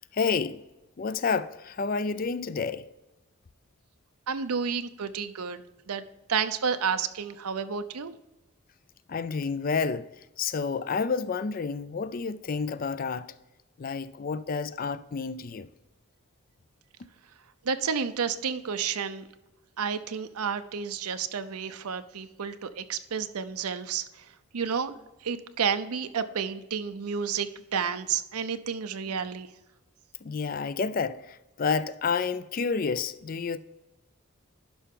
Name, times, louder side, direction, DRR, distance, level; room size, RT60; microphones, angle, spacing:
voice 1, 0.1-0.6 1.0-2.8 9.1-10.1 10.4-13.3 13.8-15.7 30.2-33.6, left 5 dB, 40° left, 0.4 m, -29 dB
voice 2, 4.3-5.6 5.9-6.0 6.3-8.1 17.6-19.3 19.8-24.3 24.5-24.9 25.2-29.5, right 6 dB, 90° right, 0.6 m, -31 dB
11.5 x 5.7 x 3.7 m
head